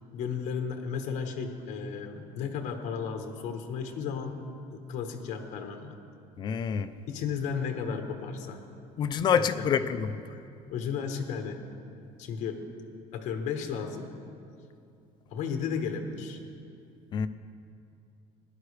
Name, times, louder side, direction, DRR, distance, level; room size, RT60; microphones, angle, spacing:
voice 1, 0.1-4.4 4.7-6.0 7.1-8.6 9.3-9.7 10.7-11.6 12.2-12.6 13.1-14.1 15.3-16.4, left 6 dB, 60° left, 1.0 m, -34 dB
voice 2, 6.4-6.9 9.0-10.2 17.1-17.3, left 7 dB, 30° left, 0.4 m, -27 dB
17.5 x 11.0 x 3.2 m
cardioid pair, 175°, 14 cm